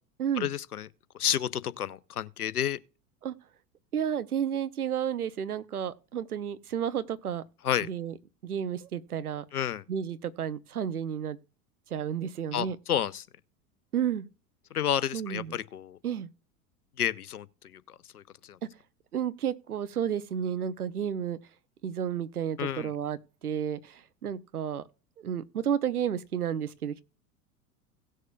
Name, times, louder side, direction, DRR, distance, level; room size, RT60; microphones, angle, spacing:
voice 1, 0.4-0.9 1.2-2.8 7.6-7.9 9.5-9.8 12.5-13.3 14.7-16.0 17.0-17.5 17.7-18.6 22.6-22.9, left 10 dB, 85° left, 0.7 m, -30 dB
voice 2, 3.9-7.4 7.8-8.1 8.4-9.4 9.9-11.4 11.9-12.8 13.9-14.3 15.1-15.5 16.0-16.3 19.1-21.4 21.8-24.8 25.2-27.0, right 9 dB, 80° right, 0.8 m, -31 dB
17.5 x 6.5 x 2.3 m
figure-of-eight pair, 85°, 44 cm